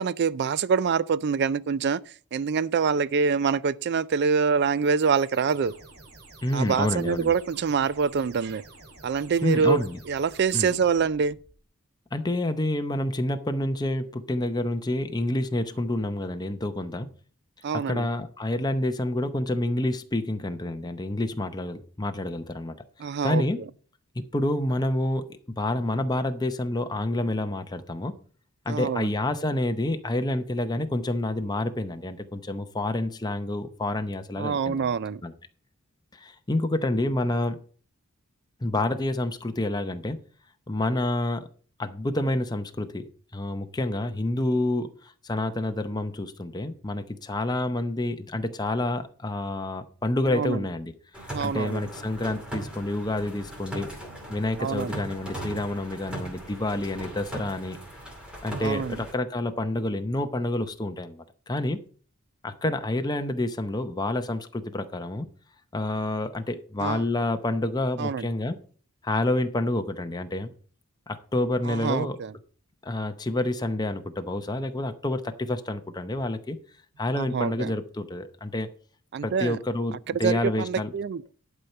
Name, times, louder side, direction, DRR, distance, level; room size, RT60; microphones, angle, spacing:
voice 1, 0.0-2.0 2.3-5.7 6.5-8.6 9.0-9.8 10.1-11.4 17.6-18.1 23.0-23.4 28.7-29.1 34.4-35.2 50.3-50.6 51.3-51.8 54.6-55.0 58.6-59.0 66.8-67.0 68.0-68.3 71.6-72.3 77.1-77.7 79.1-79.6 80.1-81.2, right 6 dB, 50° right, 0.4 m, -25 dB
sound 1, 4.8-11.6, right 2 dB, 90° right, 2.1 m, -50 dB
voice 2, 6.4-7.3 9.4-10.0 10.5-10.7 12.1-17.1 17.7-23.6 24.1-28.1 28.7-34.9 35.2-35.3 36.1-37.6 38.6-40.2 40.7-41.5 41.8-50.9 51.2-53.9 54.3-57.8 58.4-61.8 62.4-65.3 65.7-68.6 69.0-70.5 71.1-72.2 72.8-76.6 77.0-78.7 79.2-80.9, left 1 dB, 20° left, 0.6 m, -28 dB
sound 2, 51.1-59.1, right 1 dB, 5° right, 2.5 m, -39 dB
11.0 x 4.4 x 6.6 m
head